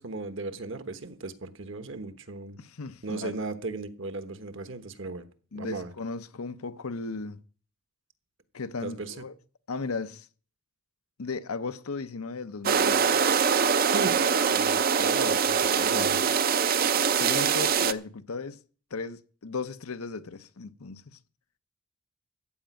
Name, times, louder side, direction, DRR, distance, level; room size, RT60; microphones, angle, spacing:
voice 1, 0.0-2.6 3.0-5.3 5.5-5.9 8.8-9.2 13.9-14.2 14.5-15.6 15.9-16.3, right 3 dB, 60° right, 1.2 m, -36 dB
voice 2, 2.6-3.4 5.5-7.4 8.5-9.3 9.7-10.3 11.2-13.2 15.8-16.3 17.2-18.6 18.9-21.0, left 4 dB, 80° left, 0.8 m, -36 dB
sound 1, 12.6-17.9, right 6 dB, 40° right, 0.6 m, -23 dB
14.5 x 5.1 x 9.2 m
head